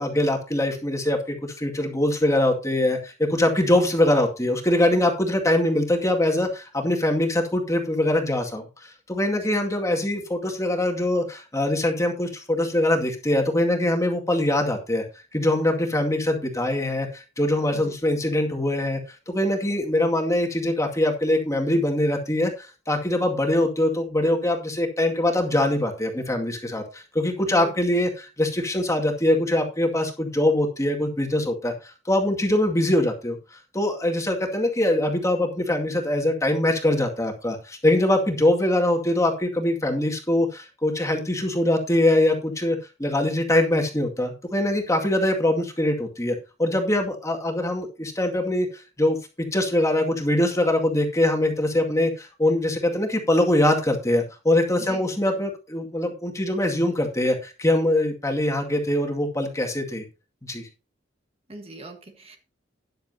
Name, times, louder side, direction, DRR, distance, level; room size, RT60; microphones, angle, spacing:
voice 1, 0.0-15.0 15.3-19.0 19.3-33.4 33.7-48.7 49.0-60.0 60.4-60.7, left 1 dB, 15° left, 1 dB, 2.1 m, -23 dB
voice 2, 54.8-55.3 61.5-62.4, right 2 dB, 30° right, 5 dB, 1.4 m, -41 dB
12.5 x 10.5 x 2.8 m, 0.30 s
head